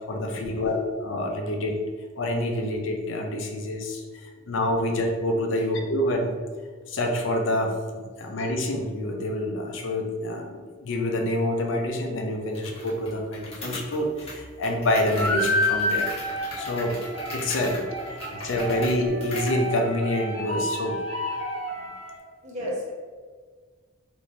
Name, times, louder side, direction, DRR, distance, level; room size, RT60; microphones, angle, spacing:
voice 1, 0.1-1.8 2.2-6.3 6.9-16.1 16.5-17.0 17.3-21.3, left 1 dB, 65° left, 2 dB, 0.5 m, -27 dB
sound 1, 12.5-19.6, left 2 dB, 30° left, 0.8 m, -39 dB
sound 2, 15.1-22.2, left 1 dB, 75° right, 1.0 m, -30 dB
voice 2, 22.4-22.9, equal, 35° right, -4 dB, 0.9 m, -38 dB
3.2 x 2.6 x 3.8 m, 1.5 s
head